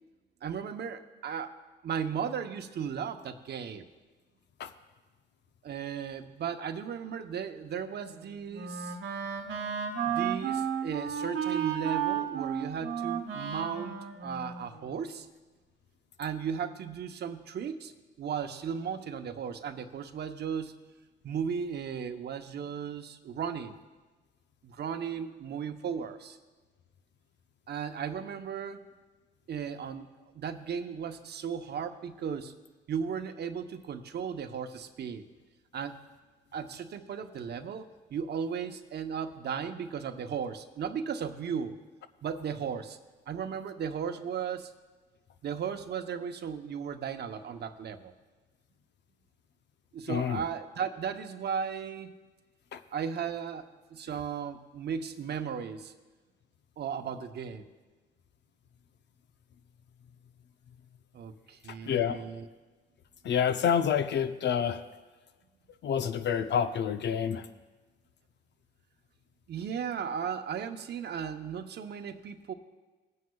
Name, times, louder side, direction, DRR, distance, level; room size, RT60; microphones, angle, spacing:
voice 1, 0.4-1.6 1.8-3.8 5.6-9.0 10.0-15.3 16.2-17.9 18.2-20.7 21.2-23.8 24.6-26.4 27.7-28.9 29.5-30.1 30.3-32.5 32.9-35.2 35.7-36.0 36.5-41.7 42.2-43.0 43.3-44.7 45.4-48.1 49.9-52.1 52.9-53.6 53.9-55.9 56.8-57.6 61.1-62.5 69.5-72.5, right 7 dB, 55° right, 7 dB, 0.8 m, -36 dB
Wind instrument woodwind instrument, 8.0-15.2, right 8 dB, 80° right, 1.2 m, -33 dB
voice 2, 50.1-50.4 52.7-52.8 61.8-62.2 63.2-64.8 65.8-67.5, left 8 dB, 60° left, 10 dB, 0.7 m, -28 dB
20.0 x 9.5 x 2.3 m, 1.3 s
cardioid pair, 90°, 20 cm